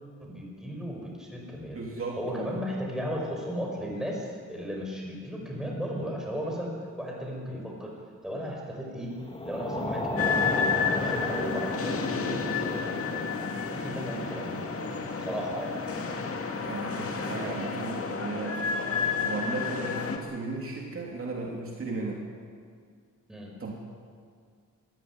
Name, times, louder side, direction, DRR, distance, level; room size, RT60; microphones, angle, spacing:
voice 1, 0.2-1.8 2.2-7.9 8.2-9.1 9.4-10.7 10.9-14.7 15.2-15.7 23.3-23.5, equal, ahead, -1 dB, 5.3 m, -35 dB
voice 2, 1.7-2.6 16.7-18.6 19.2-22.3 23.6-23.7, right 3 dB, 45° right, -1 dB, 2.8 m, -35 dB
sound 1, 9.2-17.9, left 1 dB, 15° left, 2.5 m, -36 dB
sound 2, 10.2-20.2, left 5 dB, 45° left, 2.2 m, -31 dB
23.0 x 15.5 x 9.7 m, 2.1 s
wide cardioid pair, 155°, 32 cm